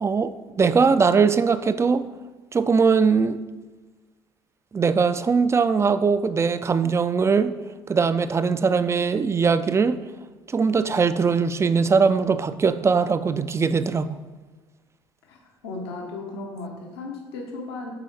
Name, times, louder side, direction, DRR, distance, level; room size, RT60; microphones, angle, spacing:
voice 1, 0.0-2.0 2.5-3.4 4.7-7.5 7.9-10.0 10.5-14.1, right 5 dB, 20° right, 0.3 m, -21 dB
voice 2, 15.3-17.9, left 3 dB, 75° left, 0.9 m, -35 dB
8.4 x 4.1 x 3.2 m
hypercardioid pair, 60°, 13 cm